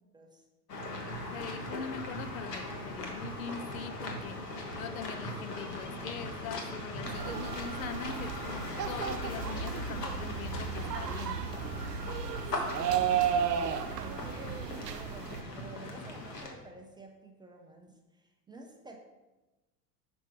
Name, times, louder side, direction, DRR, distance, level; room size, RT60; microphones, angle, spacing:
voice 1, 0.1-0.5 12.5-19.0, right 2 dB, 10° right, 2 dB, 0.5 m, -51 dB
sound 1, 0.7-16.5, left 1 dB, 75° left, 1.6 m, -40 dB
voice 2, 1.1-4.4 4.7-11.4, left 6 dB, 60° left, 11 dB, 0.7 m, -42 dB
sound 2, 7.0-15.4, right 8 dB, 75° right, 0.6 m, -34 dB
6.1 x 5.7 x 4.5 m, 1.1 s
figure-of-eight pair, 85°, 48 cm